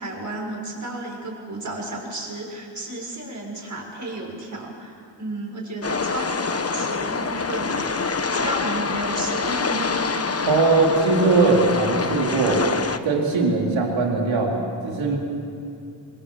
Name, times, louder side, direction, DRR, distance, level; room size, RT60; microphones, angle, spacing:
voice 1, 0.0-8.0 8.3-9.9, right 1 dB, 40° right, 0 dB, 6.7 m, -32 dB
sound 1, 5.8-13.0, left 4 dB, 30° left, 1.2 m, -26 dB
voice 2, 10.5-12.6 13.0-15.2, right 3 dB, 90° right, -1 dB, 4.0 m, -20 dB
25.5 x 22.5 x 7.6 m, 2.6 s
cardioid pair, 70°, 45 cm